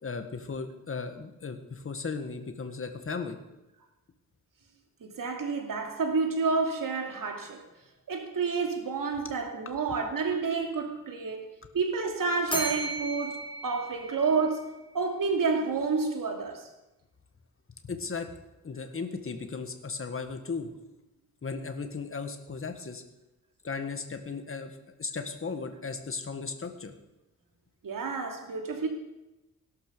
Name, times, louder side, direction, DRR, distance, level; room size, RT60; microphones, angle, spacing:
voice 1, 0.0-3.4 17.8-18.3 18.6-20.7 21.4-23.0 23.6-27.0, left 4 dB, 40° left, 1.8 m, -36 dB
voice 2, 5.0-7.6 8.1-11.4 11.7-16.7 27.8-28.9, right 4 dB, 75° right, 2.7 m, -29 dB
Bell, 12.5-14.8, right 2 dB, 15° left, 2.8 m, -35 dB
17.5 x 12.0 x 6.9 m
wide cardioid pair, 145°, 33 cm